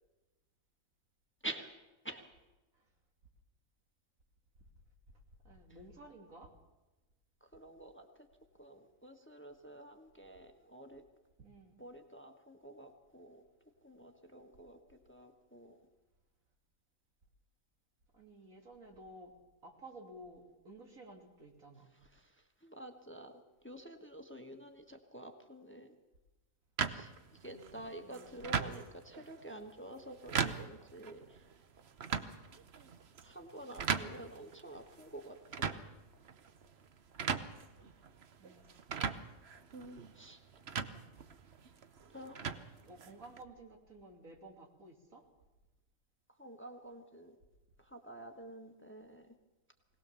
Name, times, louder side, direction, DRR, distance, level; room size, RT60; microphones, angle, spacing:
voice 1, 5.4-6.5 11.4-11.8 18.1-19.3 19.6-21.9 28.0-28.5 32.1-32.6 38.4-38.7 40.9-41.4 42.8-45.2, right 1 dB, 80° right, 2 dB, 3.2 m, -54 dB
voice 2, 7.4-8.3 8.6-11.0 11.8-13.4 13.8-15.8 21.9-25.9 26.9-31.4 33.2-35.9 40.1-40.4 42.1-42.5 46.3-47.4 47.8-49.3, right 1 dB, 10° left, 5 dB, 1.4 m, -49 dB
sound 1, 26.8-43.4, right 6 dB, 50° right, 1.1 m, -40 dB
21.5 x 18.5 x 7.0 m, 1.1 s
omnidirectional pair, 1.4 m